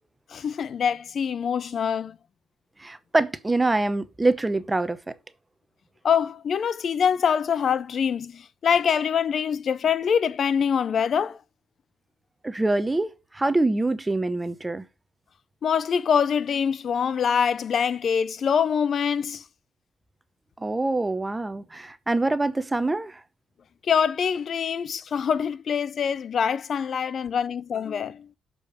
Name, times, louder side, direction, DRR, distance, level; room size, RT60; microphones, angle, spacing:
voice 1, 0.3-2.2 6.0-11.4 15.6-19.4 23.8-28.3, left 7 dB, 55° left, 0.4 m, -24 dB
voice 2, 2.8-5.1 12.4-14.8 20.6-23.2, right 2 dB, 15° right, 0.7 m, -25 dB
6.6 x 5.3 x 5.1 m
cardioid pair, 90°, 0 cm